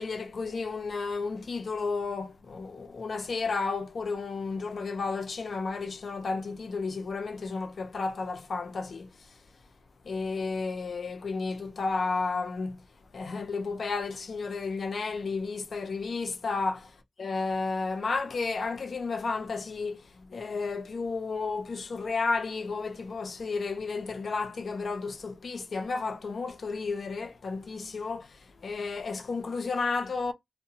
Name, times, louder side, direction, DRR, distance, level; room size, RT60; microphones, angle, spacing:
voice 1, 0.0-9.4 10.0-12.8 13.1-30.3, left 4 dB, 80° left, 0.4 m, -32 dB
2.7 x 2.0 x 2.7 m
cardioid pair, 60°, 0 cm